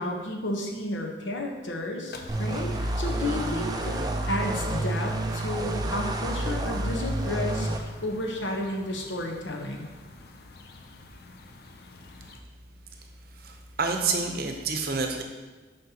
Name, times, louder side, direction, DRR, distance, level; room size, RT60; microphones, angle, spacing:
voice 1, 0.0-4.0 4.3-7.7 8.0-9.9, left 1 dB, 80° left, 1 dB, 1.0 m, -32 dB
sound 1, 2.1-12.4, left 2 dB, 55° left, 0.5 m, -47 dB
sound 2, 2.3-7.8, right 1 dB, 20° right, 0.4 m, -29 dB
voice 2, 13.4-15.2, right 4 dB, 50° right, 4 dB, 0.7 m, -28 dB
7.6 x 5.4 x 2.9 m, 1.4 s
head